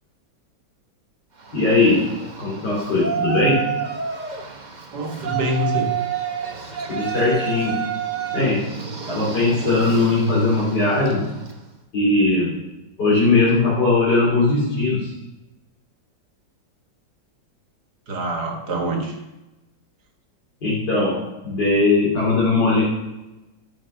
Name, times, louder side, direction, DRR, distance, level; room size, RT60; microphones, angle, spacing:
Yell, 1.4-11.6, right 7 dB, 30° right, 1.0 m, -29 dB
voice 1, 1.5-2.1 2.4-3.8 6.9-7.9 8.3-8.7 9.1-11.3 11.9-12.6 13.0-15.1 20.6-22.8, left 3 dB, 60° left, -9 dB, 3.9 m, -19 dB
voice 2, 4.9-5.9 18.1-19.2, right 1 dB, 55° right, 3 dB, 2.2 m, -25 dB
13.5 x 6.9 x 5.8 m, 1.0 s
omnidirectional pair, 2.1 m